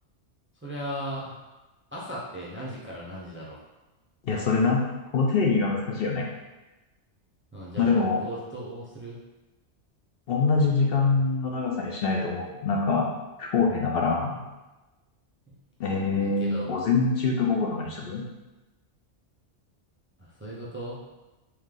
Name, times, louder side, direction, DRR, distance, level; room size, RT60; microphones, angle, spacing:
voice 1, 0.6-1.4 1.9-3.6 7.5-9.2 15.5-15.6 16.2-16.7 20.2-21.0, right 1 dB, 15° right, -6 dB, 0.5 m, -37 dB
voice 2, 4.2-4.8 5.1-6.3 7.8-8.2 10.3-13.1 13.4-14.4 15.8-18.2, left 4 dB, 60° left, -1 dB, 0.7 m, -24 dB
3.3 x 3.1 x 3.7 m, 1.1 s
omnidirectional pair, 1.2 m